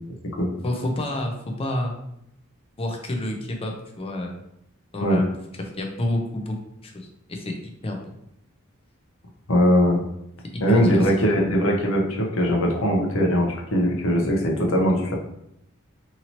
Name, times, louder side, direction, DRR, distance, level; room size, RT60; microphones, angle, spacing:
voice 1, 0.6-1.9 2.8-4.4 4.9-5.3 5.6-6.6 6.8-8.0 10.5-11.1, left 1 dB, 25° left, 1 dB, 0.5 m, -29 dB
voice 2, 9.5-10.0 10.6-15.1, equal, 65° left, -1 dB, 0.7 m, -20 dB
2.8 x 2.7 x 2.8 m, 0.78 s
head